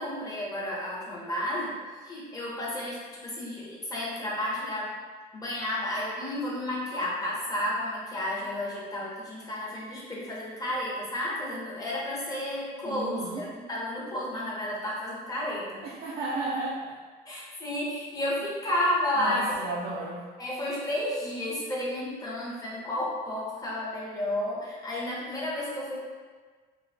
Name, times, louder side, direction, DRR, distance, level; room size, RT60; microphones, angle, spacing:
voice 1, 0.0-1.8 2.0-5.0 5.3-15.8 17.3-19.4 20.4-26.0, left 1 dB, 20° left, -5 dB, 0.7 m, -32 dB
voice 2, 12.8-13.5 15.8-17.0 19.2-20.2, right 2 dB, 65° right, -5 dB, 0.4 m, -33 dB
2.7 x 2.2 x 2.5 m, 1.5 s
cardioid pair, 110°, 17 cm